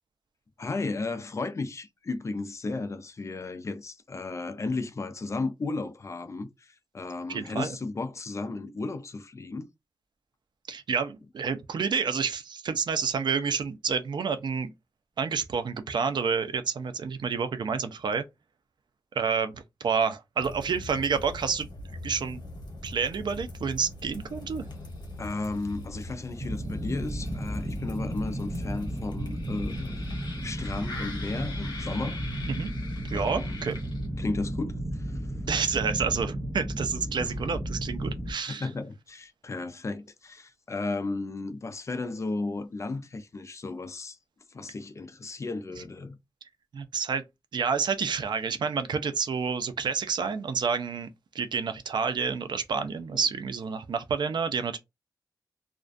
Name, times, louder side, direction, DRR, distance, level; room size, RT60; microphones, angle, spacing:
voice 1, 0.6-9.7 25.2-30.0 30.4-32.2 33.1-33.6 34.2-35.2 38.5-44.2 44.5-46.2, left 3 dB, 40° left, 0.4 m, -34 dB
voice 2, 7.3-7.8 10.7-14.7 15.2-18.2 19.1-21.7 22.0-22.4 22.8-24.7 32.5-32.7 33.0-33.8 35.5-38.7 46.7-47.2 47.5-51.1 51.3-54.8, right 6 dB, 85° right, 0.4 m, -29 dB
sound 1, 20.4-34.3, left 2 dB, 70° left, 1.0 m, -42 dB
sound 2, 26.4-38.3, right 1 dB, 35° right, 0.7 m, -34 dB
2.4 x 2.1 x 2.4 m
wide cardioid pair, 135°, 8 cm